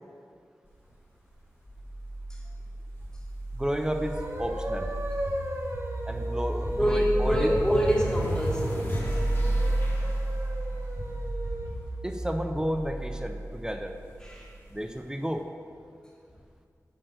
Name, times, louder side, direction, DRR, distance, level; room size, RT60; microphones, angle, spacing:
sound 1, 1.7-14.8, right 1 dB, 40° left, 2.5 m, -32 dB
voice 1, 3.5-4.9 6.1-7.5 12.0-13.9 14.7-15.5, equal, 10° right, 5 dB, 0.5 m, -32 dB
sound 2, 3.6-11.8, right 1 dB, 45° right, 1.0 m, -37 dB
voice 2, 6.7-9.0 14.2-14.6, equal, 10° left, -4 dB, 1.7 m, -26 dB
7.7 x 6.1 x 6.6 m, 2.3 s
wide cardioid pair, 90°, 6 cm